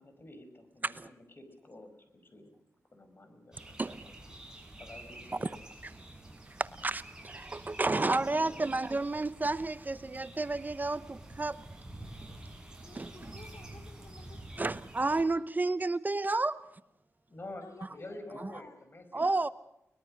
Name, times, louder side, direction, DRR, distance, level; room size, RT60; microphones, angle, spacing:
voice 1, 0.0-1.9 2.3-2.6 2.9-4.4 4.8-5.6 17.3-19.3, left 2 dB, 40° left, 5.4 m, -49 dB
sound 1, 3.5-15.2, right 1 dB, 15° right, 7.1 m, -49 dB
voice 2, 6.6-11.6 12.9-13.4 14.6-16.6 19.1-19.5, right 2 dB, 35° right, 0.9 m, -31 dB
voice 3, 12.8-14.7 17.6-18.8, left 4 dB, 75° left, 4.5 m, -54 dB
23.0 x 21.0 x 6.5 m
cardioid pair, 70°, 5 cm